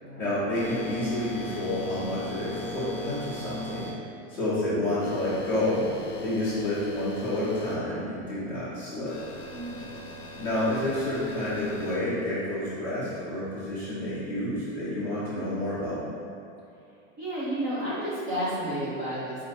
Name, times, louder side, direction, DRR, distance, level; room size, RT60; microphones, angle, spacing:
voice 1, 0.2-3.9 4.3-5.8 6.2-9.1 10.4-16.0, left 1 dB, 5° left, -14 dB, 1.0 m, -29 dB
sound 1, 0.5-3.9 5.0-7.7 9.1-11.9, left 1 dB, 45° left, 0.8 m, -40 dB
voice 2, 9.5-9.9 17.2-19.4, right 1 dB, 15° right, -10 dB, 0.3 m, -31 dB
4.5 x 2.4 x 4.2 m, 2.6 s
supercardioid pair, 180°, 37 cm